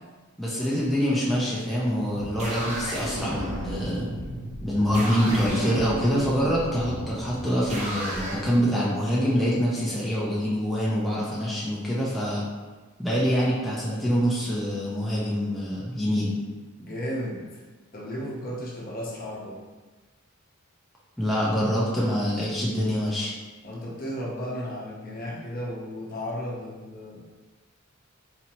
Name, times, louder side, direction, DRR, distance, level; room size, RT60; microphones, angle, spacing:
voice 1, 0.4-4.1 4.6-12.4 13.0-16.3 21.2-23.3, equal, ahead, -8 dB, 0.6 m, -25 dB
sound 1, 2.0-8.4, equal, 35° right, 0.8 m, -33 dB
voice 2, 16.8-17.6 17.9-19.6 23.6-27.2, equal, 45° left, -4 dB, 0.8 m, -34 dB
4.1 x 2.8 x 2.9 m, 1.3 s
head